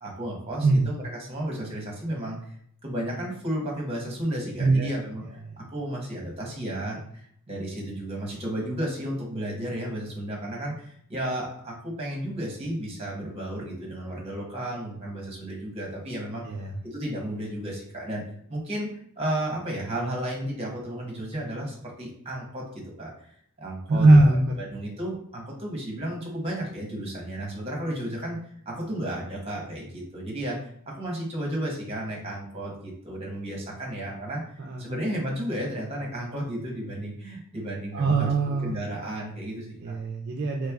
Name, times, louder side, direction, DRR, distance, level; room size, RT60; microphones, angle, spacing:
voice 1, 0.0-2.4 2.8-5.2 5.6-18.2 18.5-18.9 19.2-23.1 23.6-24.2 24.6-28.4 28.7-34.4 34.8-38.3 38.6-40.0, right 1 dB, 30° right, -2 dB, 1.0 m, -33 dB
voice 2, 4.6-4.9 16.5-16.8 23.9-24.6 34.6-34.8 37.9-38.7 39.8-40.7, right 2 dB, 50° right, 1 dB, 0.3 m, -21 dB
3.2 x 3.1 x 2.3 m, 0.65 s
head